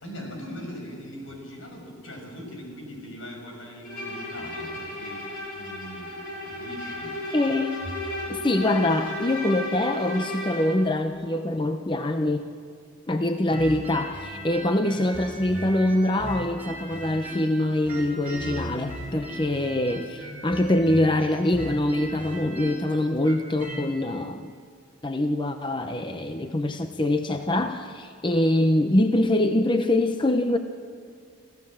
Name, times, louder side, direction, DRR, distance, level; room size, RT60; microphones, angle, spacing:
voice 1, 0.0-6.1 6.4-7.2 26.0-26.1, equal, 80° left, 1 dB, 6.2 m, -40 dB
Bowed string instrument, 3.8-10.8, left 1 dB, 45° left, 7.8 m, -34 dB
voice 2, 7.3-7.8 8.3-12.5 13.1-24.5 25.0-30.6, left 1 dB, 25° left, 7 dB, 0.7 m, -24 dB
sound 1, 13.5-17.6 17.9-23.8, right 1 dB, 10° right, 5.0 m, -37 dB
27.5 x 15.5 x 7.7 m, 2.3 s
head